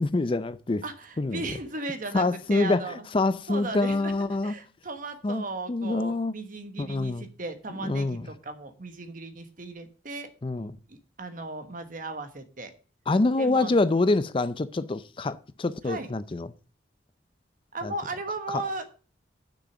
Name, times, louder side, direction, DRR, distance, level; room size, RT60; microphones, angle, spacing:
voice 1, 0.0-0.8 1.2-1.4 2.1-4.5 5.2-6.3 6.8-7.3 7.8-8.3 10.4-10.8 13.1-16.5 17.8-17.9 18.5-18.6, left 2 dB, 30° left, 0.4 m, -26 dB
voice 2, 0.8-3.0 3.5-10.3 10.9-12.7 13.4-13.8 15.9-16.1 17.7-18.9, right 2 dB, 45° right, 1.3 m, -36 dB
6.6 x 6.2 x 7.3 m
head